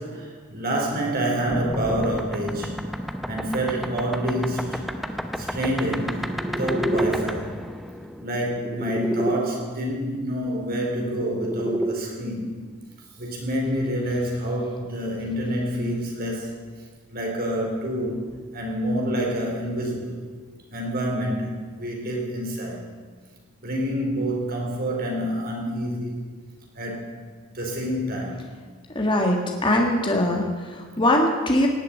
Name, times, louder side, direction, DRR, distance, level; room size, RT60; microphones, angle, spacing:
voice 1, 0.0-2.7 3.3-4.9 5.4-7.6 8.2-12.5 13.2-16.6 17.1-20.2 20.7-21.5 21.8-22.9 23.6-26.3 26.8-27.2 27.5-28.4, equal, 45° right, 0 dB, 3.9 m, -27 dB
sound 1, 1.5-9.4 10.7-11.9, right 1 dB, ahead, 0.8 m, -30 dB
voice 2, 28.9-31.7, left 1 dB, 25° left, 1 dB, 1.7 m, -22 dB
18.0 x 7.4 x 9.1 m, 1.5 s
head